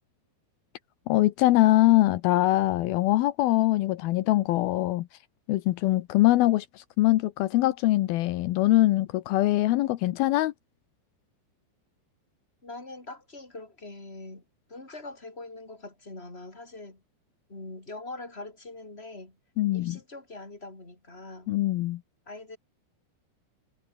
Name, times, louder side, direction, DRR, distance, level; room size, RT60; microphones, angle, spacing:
voice 1, 1.1-5.1 5.5-10.5 19.6-20.0 21.5-22.0, left 16 dB, 85° left, 2.1 m, -23 dB
voice 2, 12.6-17.0 17.5-19.4 19.7-21.6 22.3-22.6, left 2 dB, 10° left, 5.2 m, -43 dB
omnidirectional pair, 5.6 m